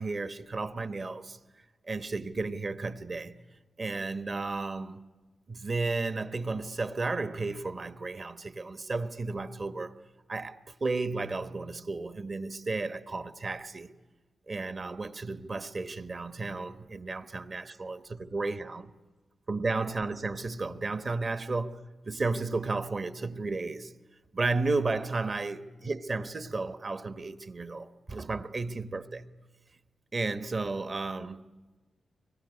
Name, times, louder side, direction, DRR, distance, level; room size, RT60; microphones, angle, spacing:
voice 1, 0.0-1.4 1.9-3.4 3.8-5.0 5.5-9.9 10.3-13.9 14.5-18.9 19.5-23.9 24.3-29.2 30.1-31.4, right 3 dB, 35° right, 1.0 m, -33 dB
25.5 x 22.0 x 9.7 m
wide cardioid pair, 150°, 0 cm